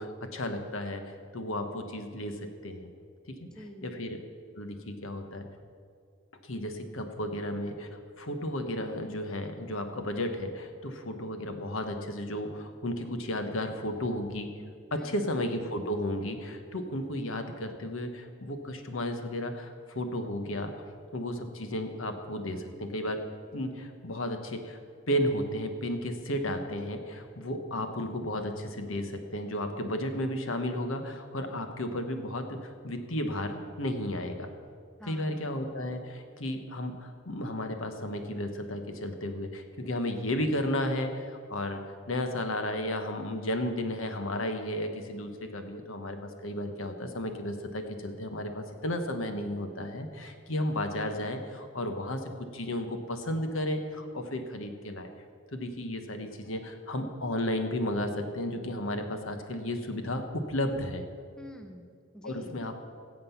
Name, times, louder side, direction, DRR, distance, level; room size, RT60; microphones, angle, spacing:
voice 1, 0.0-2.9 3.3-3.5 3.8-4.2 4.5-5.5 6.4-14.5 14.9-20.7 21.1-23.2 23.5-24.8 25.1-34.5 35.1-41.8 42.1-55.1 55.5-61.0 62.2-62.8, left 1 dB, 80° left, 6 dB, 1.2 m, -33 dB
voice 2, 3.4-4.0 15.0-15.3 35.0-35.5 61.4-62.6, equal, 5° left, 4 dB, 0.7 m, -48 dB
16.5 x 7.7 x 5.7 m, 2.2 s
head